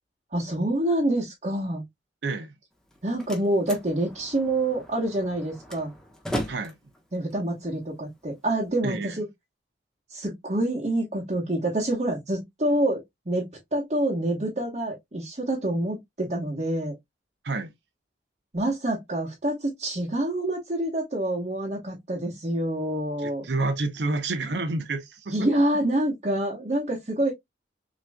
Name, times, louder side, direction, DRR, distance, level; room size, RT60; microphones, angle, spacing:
voice 1, 0.3-1.8 3.0-5.9 7.1-9.2 10.1-13.0 13.3-16.9 18.5-23.4 25.3-27.3, right 1 dB, 40° right, 1.1 m, -27 dB
voice 2, 2.2-2.5 6.5-6.7 8.8-9.2 17.4-17.7 23.2-25.5, right 3 dB, 70° right, 0.8 m, -29 dB
Slam, 2.7-8.7, equal, 5° left, 1.0 m, -38 dB
6.1 x 3.0 x 2.2 m
head